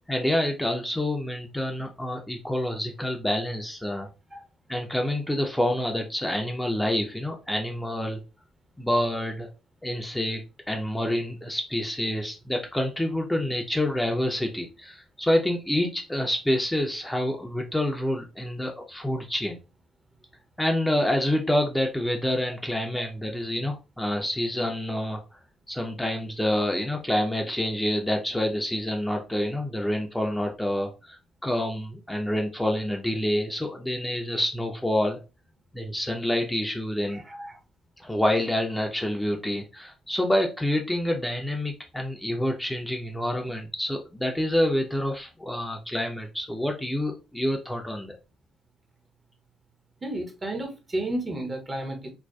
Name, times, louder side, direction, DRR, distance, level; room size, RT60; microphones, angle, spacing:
voice 1, 0.1-4.1 4.7-8.2 8.8-9.5 9.8-10.4 10.7-19.6 20.6-25.2 25.7-35.2 35.7-37.2 38.0-48.1, left 1 dB, 10° left, 0.5 m, -27 dB
voice 2, 37.1-37.6 50.0-52.1, right 1 dB, 30° right, 0.8 m, -32 dB
2.5 x 2.2 x 2.2 m
hypercardioid pair, 50°, 0 cm